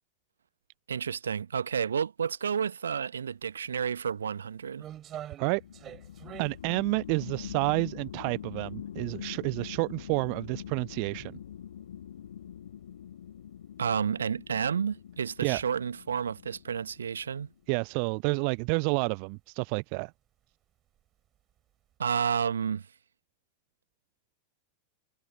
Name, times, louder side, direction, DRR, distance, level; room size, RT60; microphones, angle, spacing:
voice 1, 0.9-4.9 13.8-17.5 22.0-22.9, right 7 dB, 70° right, 1.0 m, -30 dB
sound 1, 3.4-3.5 4.0-9.1 9.4-9.6 10.3-10.4 10.7-10.8 11.8-11.9 12.2-12.3 12.9-13.0 13.3-13.4 15.5-15.6 16.9-17.2 17.6-18.0 18.4-18.6 18.9-19.0 20.1-20.3 20.9-21.6 21.9-22.0, right 11 dB, 30° right, 7.4 m, -46 dB
sound 2, 5.6-17.6, left 9 dB, 65° left, 1.3 m, -44 dB
voice 2, 6.4-11.4 15.4-15.6 17.7-20.1, right 40 dB or more, 45° right, 0.4 m, -29 dB
figure-of-eight pair, 90°, 0 cm